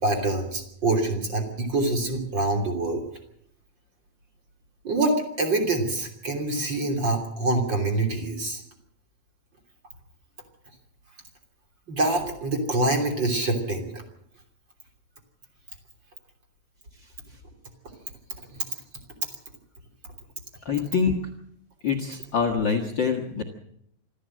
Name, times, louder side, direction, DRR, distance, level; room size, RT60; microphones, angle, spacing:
voice 1, 0.0-3.0 4.8-8.6 11.9-14.0 18.5-18.6, right 2 dB, 30° right, 3 dB, 3.2 m, -25 dB
voice 2, 20.6-21.2 21.8-23.4, left 6 dB, 80° left, 6 dB, 1.0 m, -25 dB
26.0 x 13.0 x 7.6 m, 0.71 s
omnidirectional pair, 4.9 m